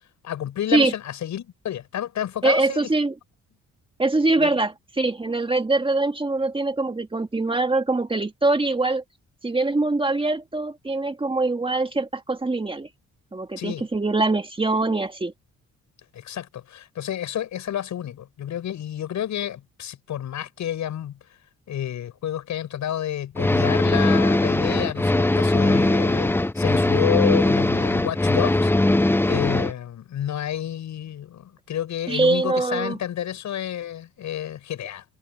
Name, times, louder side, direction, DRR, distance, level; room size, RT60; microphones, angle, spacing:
voice 1, 0.2-2.9 4.4-4.5 13.6-13.8 16.1-21.2 21.7-28.7 29.3-35.0, left 11 dB, 70° left, 7.7 m, -30 dB
voice 2, 2.4-3.1 4.0-9.0 9.4-12.9 13.3-15.3 32.1-33.0, right 2 dB, 15° right, 1.9 m, -23 dB
sound 1, 23.4-29.7, left 2 dB, 5° left, 0.8 m, -20 dB
cardioid pair, 90°, 30 cm